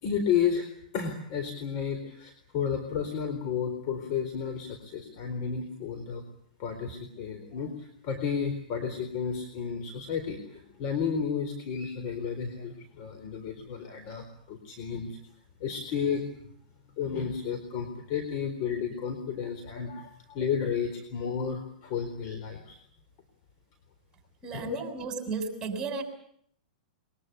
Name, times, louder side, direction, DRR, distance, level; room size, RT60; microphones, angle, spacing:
voice 1, 0.0-6.2 6.6-15.2 15.6-16.3 17.0-22.8 24.5-24.8, left 7 dB, 45° left, 6 dB, 4.2 m, -32 dB
voice 2, 24.4-26.0, right 4 dB, 15° right, 5 dB, 6.9 m, -34 dB
23.0 x 22.5 x 8.4 m, 0.66 s
hypercardioid pair, 125°, 4 cm